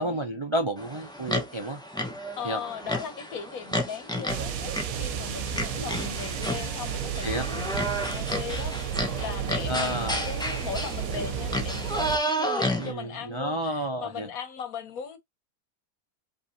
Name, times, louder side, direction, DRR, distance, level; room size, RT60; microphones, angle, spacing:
voice 1, 0.0-1.8 2.4-2.6 5.7-6.0 7.2-7.5 9.7-10.2 12.8-14.3, right 1 dB, 40° right, 0.4 m, -31 dB
sound 1, 0.8-12.9, equal, 5° left, 0.8 m, -32 dB
voice 2, 2.3-15.2, left 6 dB, 85° left, 1.6 m, -38 dB
sound 2, 4.3-12.2, right 8 dB, 80° right, 1.2 m, -32 dB
5.1 x 3.3 x 2.7 m
omnidirectional pair, 1.5 m